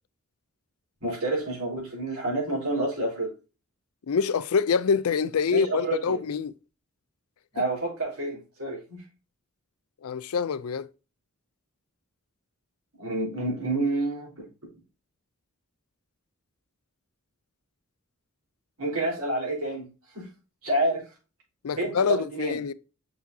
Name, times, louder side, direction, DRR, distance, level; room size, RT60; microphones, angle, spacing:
voice 1, 1.0-3.3 5.5-6.2 7.5-9.0 13.0-14.7 18.8-20.3 20.6-21.1 21.8-22.6, right 2 dB, 85° right, 3.9 m, -29 dB
voice 2, 4.1-6.5 10.0-10.9 21.6-22.7, left 5 dB, 85° left, 0.5 m, -25 dB
6.1 x 5.8 x 2.7 m
head